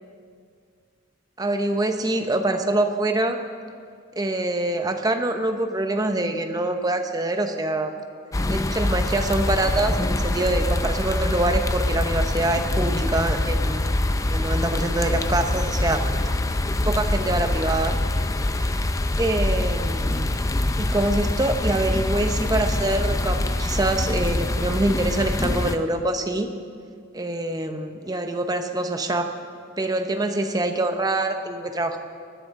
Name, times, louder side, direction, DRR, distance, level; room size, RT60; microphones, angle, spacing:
voice 1, 1.4-3.4 4.2-7.9 8.5-13.8 14.3-16.1 16.8-18.0 18.6-18.9 19.2-20.3 20.8-26.5 27.1-29.3 29.8-32.0, right 2 dB, 20° right, 6 dB, 0.7 m, -25 dB
sound 1, 8.3-25.8, left 1 dB, 15° left, 0.4 m, -24 dB
19.5 x 14.0 x 3.7 m, 2.2 s
head